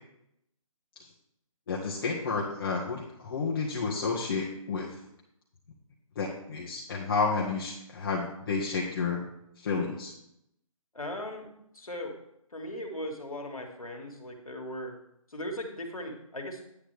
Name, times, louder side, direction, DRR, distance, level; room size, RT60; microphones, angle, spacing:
voice 1, 1.7-5.0 6.1-9.2 9.6-10.1, left 4 dB, 40° left, -3 dB, 1.5 m, -31 dB
voice 2, 10.9-11.5 11.7-12.1 12.5-14.9 15.3-16.6, left 1 dB, 85° left, 1 dB, 2.3 m, -38 dB
10.0 x 8.7 x 3.5 m, 0.78 s
figure-of-eight pair, 150°, 18 cm